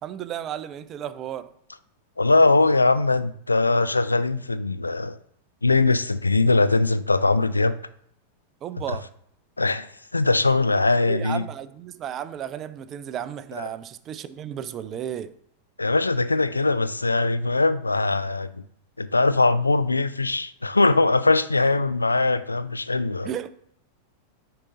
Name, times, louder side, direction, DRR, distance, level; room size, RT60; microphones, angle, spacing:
voice 1, 0.0-1.5 8.6-9.1 11.0-15.3 23.2-23.5, right 10 dB, 30° right, 0.4 m, -33 dB
voice 2, 2.2-5.2 5.6-7.8 9.6-9.9 10.1-11.4 13.6-13.7 15.8-18.6 19.0-23.3, left 3 dB, 80° left, 0.3 m, -21 dB
9.6 x 3.8 x 2.8 m
figure-of-eight pair, 90°, 0 cm